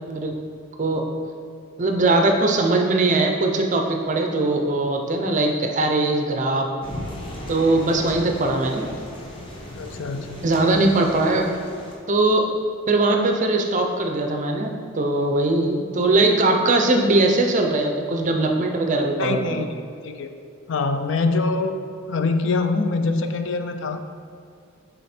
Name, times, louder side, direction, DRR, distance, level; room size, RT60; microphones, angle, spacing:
voice 1, 1.8-6.7 7.5-8.9 10.4-11.5 12.1-12.4 12.9-19.6, right 2 dB, 35° right, 3 dB, 0.5 m, -20 dB
sound 1, 6.8-11.9, left 1 dB, 25° left, 0.9 m, -36 dB
voice 2, 9.8-10.4 19.2-19.7 20.0-20.4 20.7-21.8 22.1-24.2, left 3 dB, 55° left, 7 dB, 0.4 m, -24 dB
7.4 x 4.1 x 4.3 m, 2.4 s
head